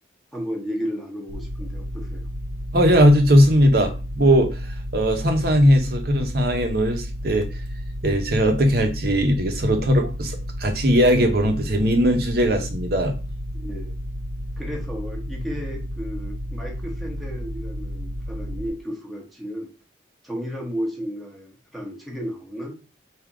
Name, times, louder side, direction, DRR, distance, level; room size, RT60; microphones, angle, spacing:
voice 1, 0.3-2.3 13.5-13.9 14.6-19.7 20.2-22.7, equal, ahead, -1 dB, 1.0 m, -33 dB
sound 1, 1.3-18.7, equal, 90° right, 0.8 m, -32 dB
voice 2, 2.7-4.6 4.9-7.5 8.0-13.1, equal, 55° right, 4 dB, 0.7 m, -19 dB
3.6 x 2.8 x 4.6 m, 0.33 s
head